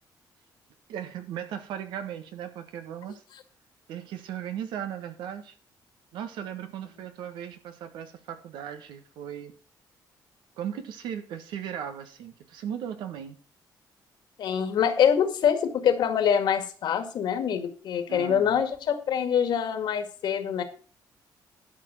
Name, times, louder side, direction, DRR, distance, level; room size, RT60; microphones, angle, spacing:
voice 1, 0.9-3.2 3.9-5.6 6.1-9.5 10.6-13.4 18.1-18.6, right 9 dB, 90° right, 8 dB, 1.7 m, -37 dB
voice 2, 14.4-20.6, left 8 dB, 70° left, 7 dB, 2.0 m, -25 dB
12.0 x 5.1 x 7.6 m, 0.40 s
cardioid pair, 95°, 8 cm